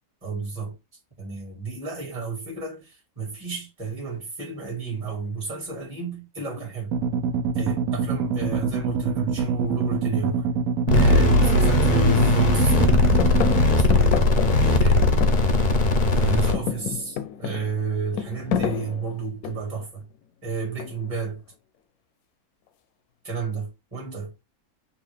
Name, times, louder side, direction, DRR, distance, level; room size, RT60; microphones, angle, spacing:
voice 1, 0.2-0.7 1.2-7.0 7.6-10.5 10.9-13.6 13.9-14.3 14.6-15.1 16.1-20.0 20.4-21.4 23.2-24.3, right 4 dB, 25° right, 1.8 m, -31 dB
sound 1, 6.9-13.7, right 5 dB, 80° right, 1.1 m, -25 dB
sound 2, 10.9-16.5, left 2 dB, 45° left, 0.7 m, -19 dB
sound 3, 12.8-15.9 16.2-19.8 20.8-21.3, left 8 dB, 85° left, 1.1 m, -30 dB
5.8 x 2.5 x 3.3 m
omnidirectional pair, 1.5 m